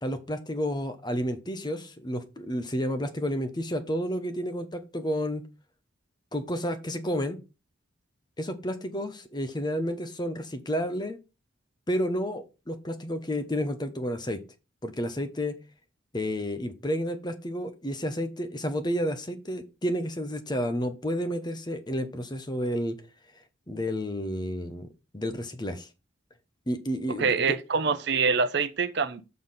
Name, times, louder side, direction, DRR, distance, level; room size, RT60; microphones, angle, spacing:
voice 1, 0.0-5.4 6.3-7.4 8.4-11.2 11.9-14.4 14.8-15.6 16.1-23.0 23.7-24.9 25.1-25.9 26.7-27.6, equal, 20° left, 0.9 m, -31 dB
voice 2, 27.2-29.2, right 5 dB, 60° right, 0.7 m, -25 dB
7.0 x 4.1 x 5.6 m
head